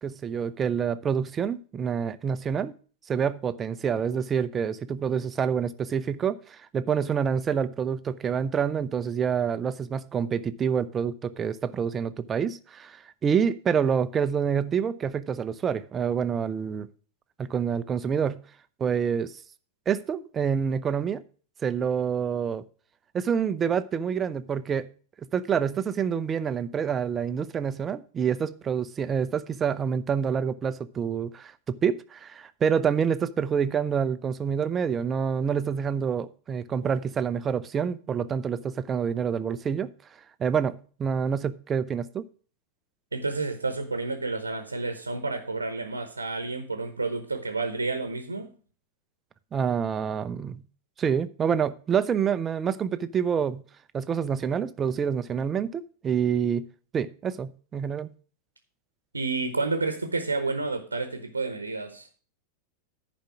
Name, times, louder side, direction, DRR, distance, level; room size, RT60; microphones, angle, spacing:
voice 1, 0.0-2.7 3.1-16.9 17.4-18.4 18.8-19.3 19.9-21.2 21.6-22.6 23.1-24.9 25.3-39.9 40.4-42.3 49.5-50.6 51.0-53.6 53.9-56.6 56.9-58.1, right 7 dB, 20° right, 0.5 m, -27 dB
voice 2, 43.1-48.5 59.1-62.1, right 3 dB, 80° right, 0.9 m, -30 dB
10.5 x 5.1 x 5.8 m
figure-of-eight pair, 90°, 0 cm